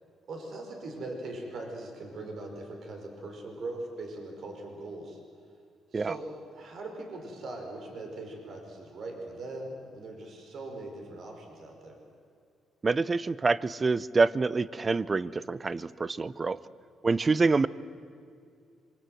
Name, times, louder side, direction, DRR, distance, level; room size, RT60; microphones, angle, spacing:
voice 1, 0.3-5.2 5.9-12.0, right 2 dB, 60° right, 3 dB, 5.2 m, -40 dB
voice 2, 12.8-16.6 17.0-17.7, right 3 dB, 30° right, 18 dB, 0.7 m, -26 dB
26.5 x 24.0 x 7.9 m, 2.3 s
cardioid pair, 90°, 0 cm